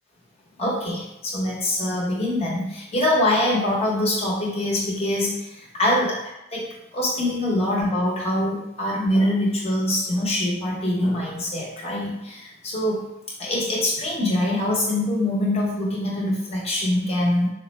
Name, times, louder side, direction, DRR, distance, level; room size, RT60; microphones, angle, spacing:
voice 1, 0.6-6.1 6.9-13.0 13.4-17.5, left 1 dB, 30° left, -5 dB, 1.0 m, -24 dB
3.9 x 2.2 x 4.1 m, 0.87 s
head